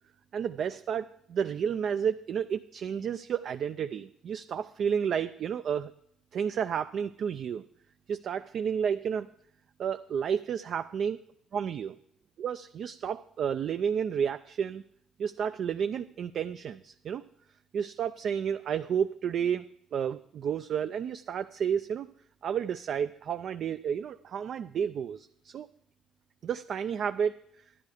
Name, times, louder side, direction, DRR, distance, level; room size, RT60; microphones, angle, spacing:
voice 1, 0.3-5.9 6.3-7.6 8.1-9.3 9.8-11.2 11.5-12.0 12.4-14.8 15.2-17.2 17.7-22.1 22.4-25.7 26.4-27.3, right 7 dB, 60° right, 10 dB, 0.4 m, -31 dB
11.0 x 10.5 x 5.0 m, 0.72 s
cardioid pair, 85°, 0 cm